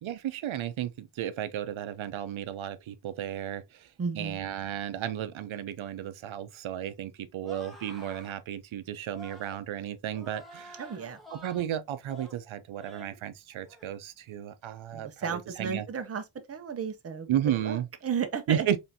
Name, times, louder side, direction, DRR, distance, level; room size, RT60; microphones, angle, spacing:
voice 1, 0.0-3.9 4.2-10.8 11.3-15.8 17.3-17.9 18.5-18.8, right 10 dB, 85° right, 0.6 m, -33 dB
voice 2, 4.0-4.4 10.8-11.2 14.9-17.3 17.6-18.8, right 6 dB, 30° right, 0.6 m, -34 dB
sound 1, 7.4-8.4 9.1-9.6 10.1-11.7 12.0-12.4 12.8-13.2 13.6-13.9, left 1 dB, ahead, 1.1 m, -48 dB
4.2 x 3.3 x 2.6 m
wide cardioid pair, 160°, 46 cm